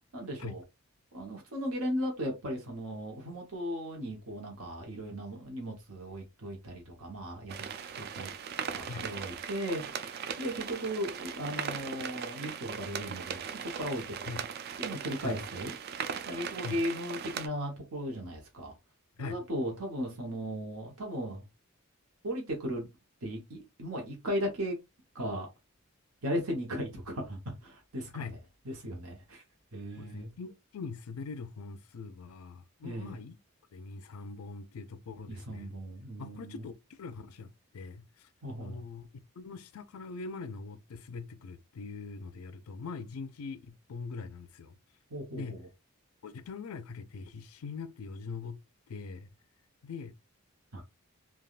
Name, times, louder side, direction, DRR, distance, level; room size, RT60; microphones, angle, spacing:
voice 1, 0.1-0.6 1.1-7.7 7.9-8.3 8.8-14.4 14.8-15.7 16.3-18.7 19.2-21.4 22.2-22.9 23.2-24.8 25.1-25.5 26.2-28.4 28.7-29.4 29.7-30.3 32.8-33.2 35.3-36.6 38.4-38.8 45.1-45.6 50.7-50.8, equal, 80° right, 1.0 m, -37 dB
sound 1, 7.5-17.5, right 7 dB, 45° right, 0.3 m, -39 dB
voice 2, 30.0-33.4 33.7-35.8 36.2-38.3 38.6-39.1 39.4-44.8 45.3-45.6 46.2-48.6 48.9-49.3 49.8-50.2, left 4 dB, 80° left, 0.4 m, -42 dB
3.4 x 2.3 x 2.4 m
head